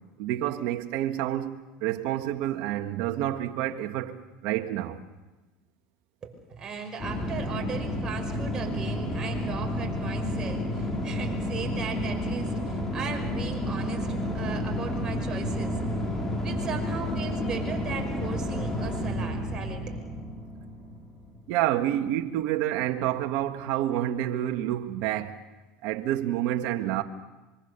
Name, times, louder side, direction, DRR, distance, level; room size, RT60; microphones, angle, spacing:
voice 1, 0.2-4.2 4.4-5.0 21.5-25.4 25.8-27.0, right 13 dB, 70° right, 1.7 m, -28 dB
voice 2, 6.2-15.8 16.4-20.0, right 5 dB, 30° right, 5.5 m, -37 dB
sound 1, 7.0-21.4, equal, 20° left, 4.6 m, -31 dB
25.0 x 24.0 x 7.0 m
supercardioid pair, 100°, 2 cm